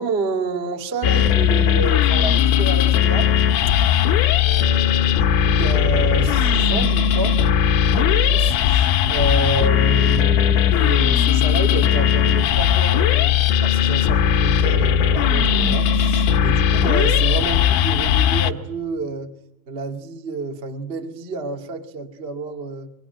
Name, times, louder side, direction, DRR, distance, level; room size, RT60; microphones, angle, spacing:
voice 1, 0.0-3.3 4.4-7.4 7.9-19.3 19.7-22.9, right 3 dB, 55° right, 0.6 m, -29 dB
sound 1, 1.0-18.5, left 9 dB, 80° left, 3.5 m, -18 dB
24.5 x 22.5 x 9.2 m
omnidirectional pair, 5.2 m